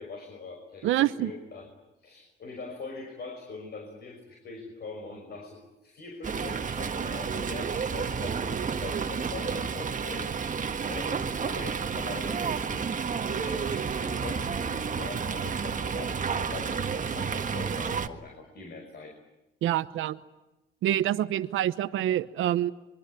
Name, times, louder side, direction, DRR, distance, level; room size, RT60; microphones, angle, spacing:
voice 1, 0.0-1.7 2.0-10.6 10.9-12.9 13.2-19.2, left 3 dB, 55° left, 3 dB, 5.9 m, -42 dB
voice 2, 0.8-1.3 19.6-20.2 20.8-22.7, right 13 dB, 85° right, 14 dB, 1.0 m, -26 dB
Fowl, 6.2-18.1, right 6 dB, 40° right, 1.7 m, -31 dB
24.5 x 23.5 x 10.0 m, 1.0 s
cardioid pair, 90°, 20 cm